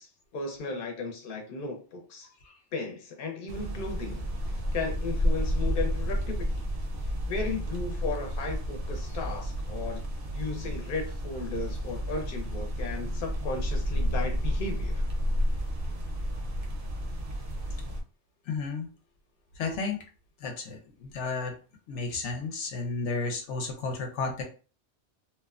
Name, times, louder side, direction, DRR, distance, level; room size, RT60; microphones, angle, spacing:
voice 1, 0.0-2.3 2.7-6.6 7.3-15.0, left 3 dB, 55° left, 3 dB, 0.8 m, -35 dB
sound 1, 3.5-18.0, equal, 60° right, 0.6 m, -31 dB
voice 2, 18.5-18.9 19.6-20.0 20.4-21.6 21.9-24.4, left 4 dB, 90° left, 3 dB, 0.9 m, -32 dB
2.8 x 2.1 x 2.4 m, 0.36 s
omnidirectional pair, 1.2 m